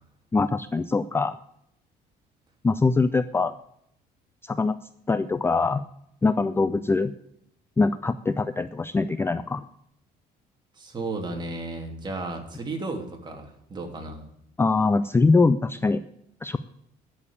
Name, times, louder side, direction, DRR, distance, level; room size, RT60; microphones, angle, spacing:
voice 1, 0.3-1.4 2.6-3.6 4.4-4.7 5.1-5.8 6.2-7.1 7.8-9.6 14.6-16.0 16.4-16.6, left 3 dB, 15° left, 13 dB, 0.4 m, -23 dB
voice 2, 10.8-14.3, right 2 dB, 25° right, 2 dB, 3.0 m, -34 dB
11.0 x 7.0 x 8.3 m, 0.74 s
cardioid pair, 110°, 17 cm